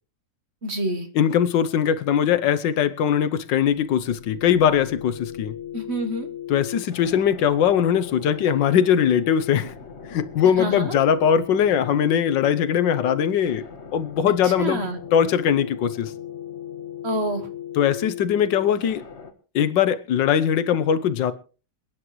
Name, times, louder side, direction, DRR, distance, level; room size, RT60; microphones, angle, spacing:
voice 1, 0.6-1.1 5.7-6.3 10.6-10.9 14.4-15.0 17.0-17.5, right 1 dB, 40° right, 1.3 m, -27 dB
voice 2, 1.1-5.5 6.5-9.7 10.1-13.6 13.9-14.8 15.1-16.1 17.8-19.0 19.5-21.3, left 8 dB, 85° left, 1.6 m, -21 dB
sound 1, 3.7-19.3, left 9 dB, 40° left, 1.6 m, -38 dB
28.0 x 9.8 x 3.1 m
omnidirectional pair, 1.9 m